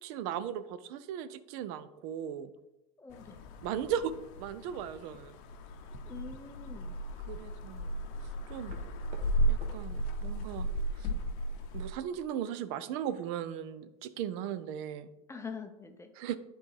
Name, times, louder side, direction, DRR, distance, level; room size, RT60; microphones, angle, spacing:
voice 1, 0.0-2.5 3.6-4.1 4.4-5.3 7.3-7.9 8.5-8.8 9.5-10.7 11.0-11.1 11.7-15.1 16.2-16.4, right 9 dB, 55° right, 14 dB, 0.5 m, -37 dB
voice 2, 3.0-3.4 6.0-7.0 15.3-16.1, left 5 dB, 15° left, 6 dB, 0.5 m, -44 dB
sound 1, 3.1-11.9, right 1 dB, 55° left, 0.7 m, -35 dB
sound 2, 3.2-9.8, right 3 dB, 35° right, 1.1 m, -57 dB
9.3 x 3.8 x 3.3 m, 0.96 s
hypercardioid pair, 100°, 20 cm